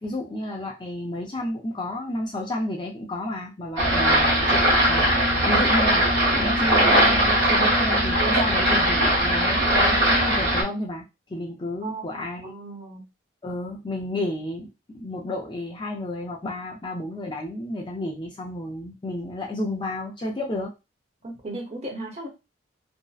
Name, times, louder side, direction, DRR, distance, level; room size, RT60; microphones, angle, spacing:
voice 1, 0.0-5.1 5.5-6.1 6.3-11.0 11.3-12.5 13.4-20.7, left 1 dB, 25° left, -1 dB, 0.4 m, -31 dB
sound 1, 3.8-10.6, right 1 dB, 55° right, 1.0 m, -20 dB
voice 2, 11.8-13.0 21.2-22.3, right 2 dB, 35° right, 0 dB, 0.7 m, -36 dB
2.6 x 2.0 x 2.3 m, 0.25 s
head